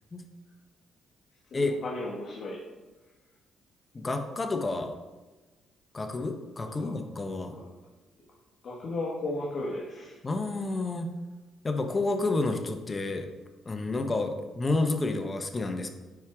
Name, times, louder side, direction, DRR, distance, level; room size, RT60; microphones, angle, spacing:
voice 1, 1.5-2.6 6.7-6.9 7.5-7.6 8.6-10.2, left 2 dB, 55° left, -4 dB, 1.6 m, -35 dB
voice 2, 3.9-4.9 5.9-7.5 10.2-11.1 11.6-13.3 13.7-15.9, left 2 dB, 25° left, 5 dB, 0.9 m, -30 dB
9.5 x 4.5 x 3.6 m, 1.2 s
cardioid pair, 90°, 0 cm